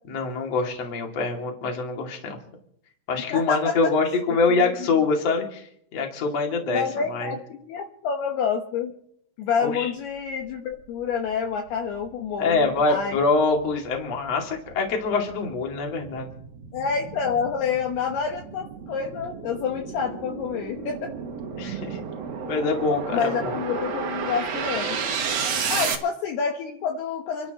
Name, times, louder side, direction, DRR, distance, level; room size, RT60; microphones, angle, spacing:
voice 1, 0.1-2.4 3.1-5.7 5.9-7.3 9.6-9.9 12.4-16.3 21.6-22.0 22.5-23.6, left 3 dB, 40° left, 1 dB, 3.0 m, -25 dB
voice 2, 3.3-3.9 4.5-4.6 6.7-8.9 9.4-13.2 16.7-21.1 23.1-25.0 25.7-27.5, left 6 dB, 70° left, 2 dB, 2.9 m, -28 dB
sound 1, 11.2-11.3 11.8-26.0, right 6 dB, 55° right, 1.8 m, -32 dB
30.0 x 12.5 x 3.0 m, 0.69 s
omnidirectional pair, 5.4 m